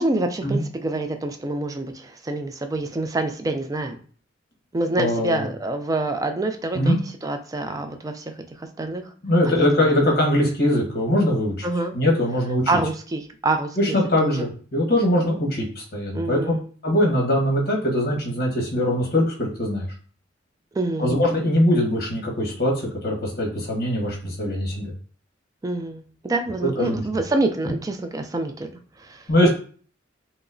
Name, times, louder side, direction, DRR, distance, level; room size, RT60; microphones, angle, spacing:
voice 1, 0.0-4.0 4.7-8.3 8.6-9.0 9.4-10.0 11.6-12.0 12.7-14.5 16.1-16.7 20.7-21.2 25.6-28.7 29.0-29.5, right 2 dB, 20° right, 6 dB, 0.3 m, -27 dB
voice 2, 5.0-5.4 6.7-7.0 9.2-11.6 11.9-12.6 13.8-16.4 16.8-19.9 21.0-22.7 23.0-24.9 26.8-27.0 29.3-29.5, left 1 dB, 55° left, -1 dB, 1.1 m, -21 dB
4.7 x 2.0 x 2.6 m, 0.43 s
head